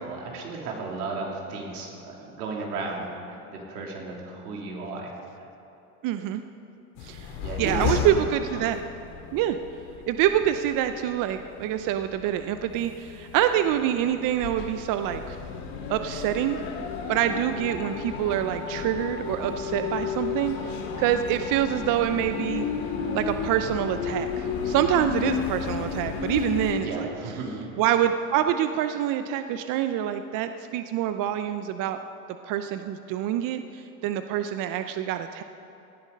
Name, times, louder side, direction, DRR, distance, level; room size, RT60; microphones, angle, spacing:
voice 1, 0.0-5.1 7.4-8.3 26.8-27.6, right 3 dB, 85° right, -1 dB, 3.2 m, -34 dB
voice 2, 6.0-6.4 7.0-8.8 9.3-9.6 10.1-15.4 15.9-16.6 17.1-22.7 23.1-27.1 27.8-32.0 32.4-35.4, right 11 dB, 45° right, 9 dB, 0.7 m, -26 dB
sound 1, 7.0-26.8, left 6 dB, 65° left, 2.2 m, -33 dB
17.5 x 10.5 x 5.3 m, 3.0 s
hypercardioid pair, 100°, 45 cm